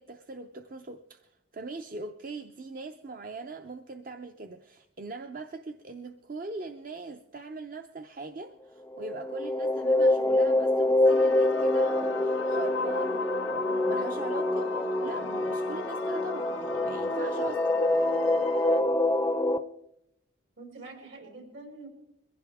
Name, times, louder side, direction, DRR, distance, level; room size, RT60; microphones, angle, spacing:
voice 1, 0.0-17.6, right 3 dB, 45° right, 0.6 m, -41 dB
sound 1, 8.9-19.6, left 1 dB, 10° left, 0.5 m, -26 dB
sound 2, 11.0-18.8, left 5 dB, 80° left, 0.7 m, -38 dB
voice 2, 20.6-21.9, right 3 dB, 70° right, 5.1 m, -46 dB
22.5 x 15.5 x 3.5 m
head